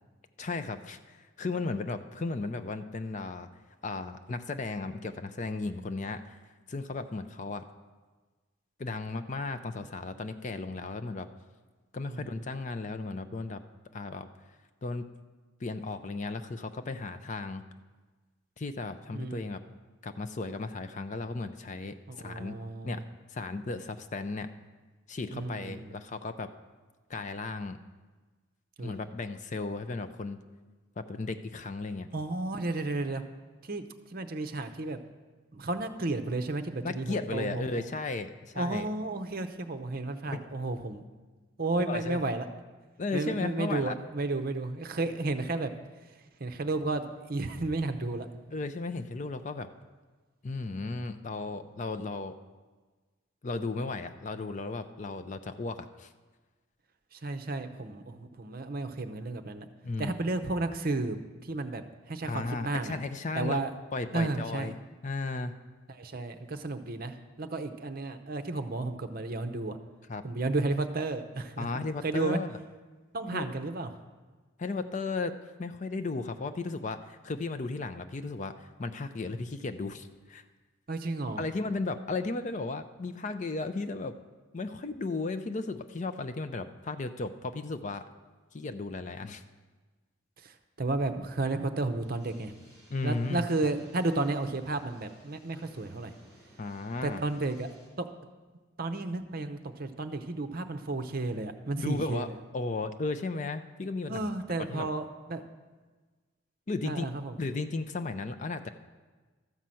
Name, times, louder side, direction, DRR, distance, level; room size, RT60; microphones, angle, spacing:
voice 1, 0.4-3.5 3.8-6.4 6.7-7.6 8.8-11.3 11.9-13.6 13.9-14.3 14.8-15.1 15.6-17.6 18.6-19.6 20.0-22.5 22.8-23.0 23.3-24.5 25.1-26.5 27.1-27.8 28.8-30.4 31.0-32.1 36.8-38.9 40.3-40.4 41.9-42.2 43.0-43.9 48.5-49.7 50.4-52.4 53.4-56.1 59.8-60.1 62.2-63.6 63.9-64.7 65.0-65.5 70.1-70.2 71.6-72.5 73.3-73.4 74.6-80.4 81.4-84.2 84.5-88.0 88.5-89.4 92.9-93.4 96.6-97.2 101.8-102.3 102.5-104.3 104.6-104.9 106.7-107.1 107.4-108.7, left 3 dB, 35° left, 10 dB, 0.5 m, -35 dB
voice 2, 12.1-12.5 19.1-19.5 22.1-23.0 25.3-26.0 28.8-28.9 32.1-33.2 33.6-35.0 35.5-37.9 38.5-41.0 41.6-42.5 43.1-45.7 46.4-48.3 57.1-59.7 60.0-61.2 61.4-63.0 63.3-63.7 64.1-64.8 65.9-69.8 70.2-72.4 73.1-73.9 80.9-81.4 90.4-92.5 93.0-96.1 97.0-98.1 98.8-102.4 104.1-105.4 106.8-107.4, right 2 dB, 45° right, 9 dB, 0.7 m, -33 dB
sound 1, 92.0-97.9, right 1 dB, 15° left, 3.7 m, -58 dB
13.0 x 5.6 x 7.6 m, 1.3 s
head